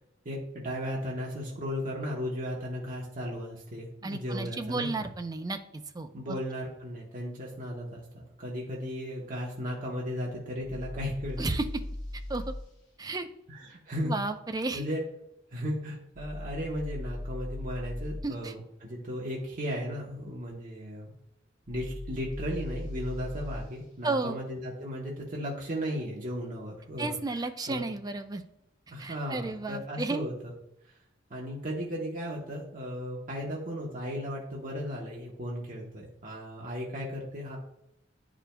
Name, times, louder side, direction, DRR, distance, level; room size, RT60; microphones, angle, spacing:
voice 1, 0.2-4.9 6.1-11.5 13.5-14.1 14.7-15.0 15.5-21.1 21.7-27.8 28.9-30.5 30.8-30.9 31.3-37.6, equal, 45° right, -3 dB, 1.1 m, -36 dB
voice 2, 4.0-6.4 11.4-11.6 12.3-12.4 13.0-13.3 14.0-14.9 18.2-18.5 24.0-24.4 27.0-28.4 29.0-30.3, right 3 dB, 20° right, 8 dB, 0.4 m, -33 dB
sound 1, 10.6-12.7 16.1-18.3 21.7-23.7, left 1 dB, 40° left, 2.1 m, -38 dB
10.0 x 5.0 x 2.3 m, 0.81 s
head